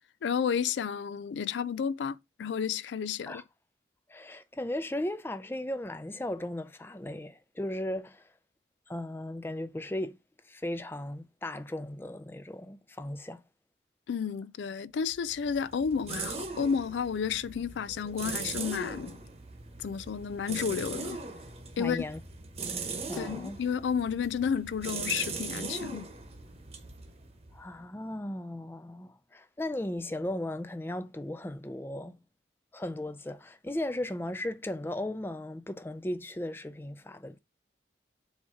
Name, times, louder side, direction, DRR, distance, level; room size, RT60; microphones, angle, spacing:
voice 1, 0.2-3.4 14.1-19.2 19.8-21.2 21.8-22.0 23.1-26.1, left 7 dB, 90° left, 0.4 m, -31 dB
voice 2, 4.1-8.2 8.9-10.2 10.5-13.4 21.8-22.2 22.6-22.8 23.1-23.6 27.5-32.2 32.7-37.4, left 1 dB, 15° left, 0.4 m, -36 dB
sound 1, 15.1-27.8, right 4 dB, 35° right, 1.0 m, -40 dB
7.2 x 2.8 x 4.7 m
head